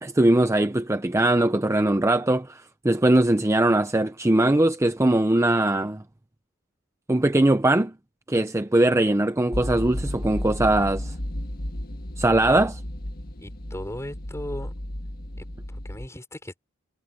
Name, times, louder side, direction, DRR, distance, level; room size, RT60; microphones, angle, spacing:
voice 1, 0.0-6.0 7.1-7.9 8.3-11.1 12.2-12.8, right 1 dB, 15° right, 0.6 m, -21 dB
sound 1, 9.5-16.1, left 1 dB, 45° left, 1.8 m, -33 dB
voice 2, 13.4-14.7 15.4-16.6, left 1 dB, 15° left, 5.7 m, -38 dB
head